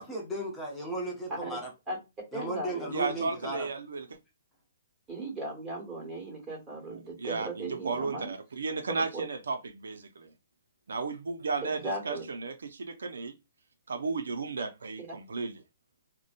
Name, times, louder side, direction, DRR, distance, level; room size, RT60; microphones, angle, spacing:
voice 1, 0.0-1.7 2.3-3.7, right 1 dB, 10° left, 0.7 m, -35 dB
voice 2, 2.3-2.9 5.1-8.3 9.1-9.2 11.6-12.2 15.0-15.1, right 2 dB, 20° right, 1.4 m, -37 dB
voice 3, 2.9-4.1 6.9-10.3 10.9-13.3 13.9-15.6, right 4 dB, 85° right, 0.4 m, -34 dB
2.6 x 2.1 x 2.4 m
hypercardioid pair, 145°, 0 cm